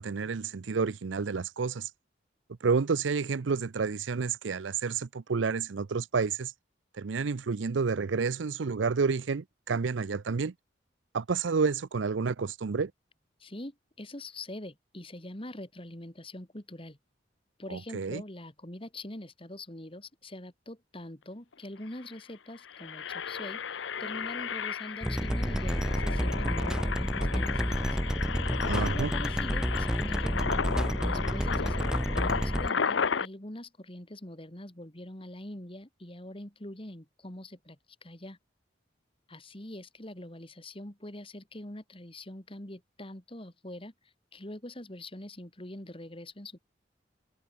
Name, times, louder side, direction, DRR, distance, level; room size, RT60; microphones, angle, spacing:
voice 1, 0.0-1.9 2.6-6.5 7.0-10.5 11.1-12.9 17.7-18.2 28.7-29.1, right 5 dB, 80° right, 0.6 m, -30 dB
voice 2, 13.4-17.0 17.6-28.0 28.8-30.5 31.0-38.4 39.3-46.6, left 1 dB, 30° left, 2.6 m, -44 dB
Engine, 21.5-21.6 21.9-22.1 22.6-33.3, left 6 dB, 80° left, 0.8 m, -34 dB
sound 1, 25.0-32.7, equal, 5° right, 0.6 m, -30 dB
head